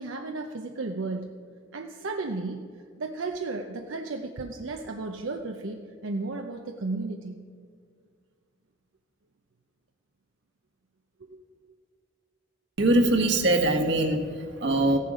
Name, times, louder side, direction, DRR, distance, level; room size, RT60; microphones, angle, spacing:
voice 1, 0.0-1.3 1.7-2.7 3.0-7.4 11.3-11.4, right 3 dB, 80° right, 4 dB, 0.7 m, -34 dB
voice 2, 12.8-15.0, right 2 dB, 60° right, 3 dB, 1.4 m, -22 dB
15.5 x 11.0 x 5.0 m, 2.1 s
head